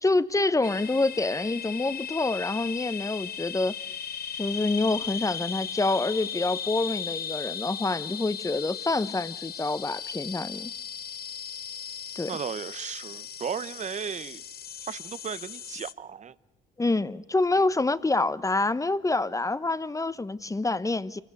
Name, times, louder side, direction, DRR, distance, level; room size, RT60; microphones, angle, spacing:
voice 1, 0.0-3.7 4.4-10.7 12.2-12.4 16.8-21.2, left 2 dB, 15° left, 1.0 m, -27 dB
sound 1, 0.6-15.9, left 8 dB, 50° left, 0.9 m, -37 dB
voice 2, 12.3-14.4 14.8-16.3, right 7 dB, 35° right, 0.8 m, -35 dB
26.5 x 16.0 x 9.7 m
cardioid pair, 90°, 20 cm